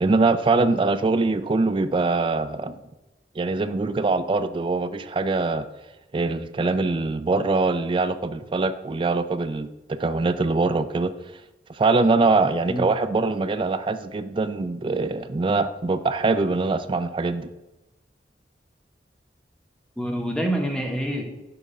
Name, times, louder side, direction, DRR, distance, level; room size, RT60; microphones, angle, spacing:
voice 1, 0.0-2.8 3.4-5.6 6.1-11.1 11.7-17.5, right 3 dB, 30° right, 11 dB, 0.3 m, -23 dB
voice 2, 20.0-21.2, right 1 dB, 5° left, 1 dB, 0.9 m, -26 dB
6.9 x 3.6 x 5.3 m, 1.0 s
head